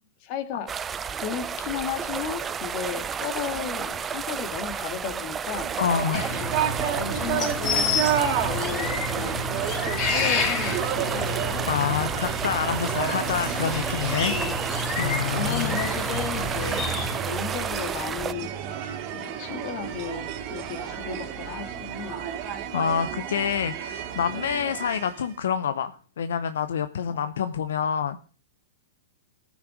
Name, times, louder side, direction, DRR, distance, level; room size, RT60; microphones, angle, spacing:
voice 1, 0.3-0.7 1.1-5.7 6.3-6.6 6.9-8.1 8.4-9.4 10.0-11.6 14.3-14.7 15.0-22.4 27.1-27.3, left 9 dB, 45° left, 2.0 m, -35 dB
sound 1, 0.7-18.3, right 7 dB, 20° right, 0.5 m, -32 dB
sound 2, 5.5-25.4, right 9 dB, 45° right, 2.3 m, -32 dB
voice 2, 5.8-6.2 11.7-14.3 15.0-15.8 22.7-28.2, left 8 dB, 75° left, 0.7 m, -27 dB
sound 3, 6.1-17.2, left 3 dB, 30° left, 3.3 m, -30 dB
15.0 x 6.3 x 5.0 m
hypercardioid pair, 115°, 0 cm